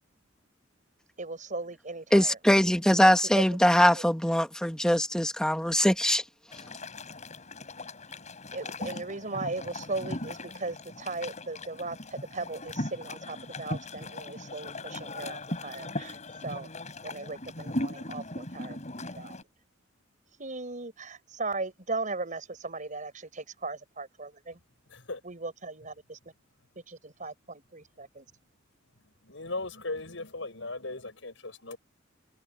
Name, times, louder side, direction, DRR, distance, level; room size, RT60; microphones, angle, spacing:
voice 1, 1.2-2.4 3.3-4.0 8.5-16.7 17.0-19.3 20.4-24.6 25.2-26.2 26.9-28.3, right 3 dB, 40° right, 5.0 m, -38 dB
voice 2, 2.1-6.2, equal, 5° left, 1.7 m, -22 dB
sound 1, 6.5-19.4, left 1 dB, 40° left, 6.5 m, -39 dB
voice 3, 29.2-31.8, left 2 dB, 75° left, 7.5 m, -37 dB
head